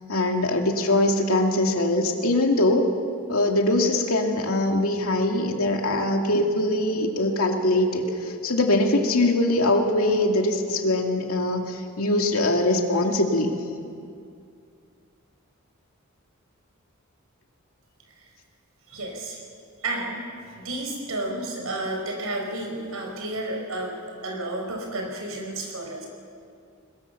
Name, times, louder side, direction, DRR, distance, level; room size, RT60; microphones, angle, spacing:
voice 1, 0.1-2.9 3.3-13.6, left 1 dB, 85° left, 3 dB, 2.4 m, -22 dB
voice 2, 18.9-19.4 19.8-20.2 20.5-26.1, right 2 dB, 80° right, 1 dB, 5.4 m, -31 dB
22.0 x 21.5 x 7.0 m, 2.4 s
head